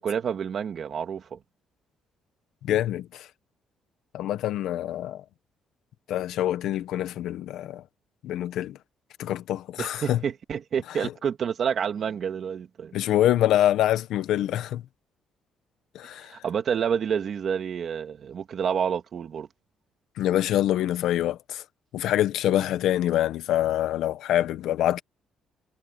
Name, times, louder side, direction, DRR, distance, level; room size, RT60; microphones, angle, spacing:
voice 1, 0.0-1.4 9.8-12.9 16.3-19.5 22.5-22.6, right 7 dB, 45° right, 2.4 m, -29 dB
voice 2, 2.6-3.3 4.1-5.2 6.1-7.8 8.2-8.8 9.2-10.2 11.0-11.1 12.9-14.8 15.9-16.3 20.2-21.6 21.9-25.0, left 12 dB, 75° left, 1.3 m, -25 dB
cardioid pair, 145°, 0 cm